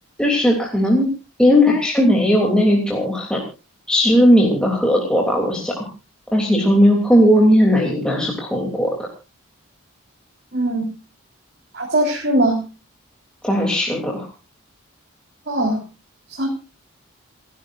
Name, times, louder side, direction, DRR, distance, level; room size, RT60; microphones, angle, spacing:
voice 1, 0.2-1.1 1.4-3.4 3.9-5.8 6.3-8.9 13.4-14.3, equal, 5° left, -2 dB, 3.0 m, -17 dB
voice 2, 10.5-10.8 11.7-12.6 15.5-15.8 16.4-16.5, right 1 dB, 50° right, -1 dB, 3.7 m, -20 dB
29.5 x 11.0 x 2.6 m, 0.30 s
head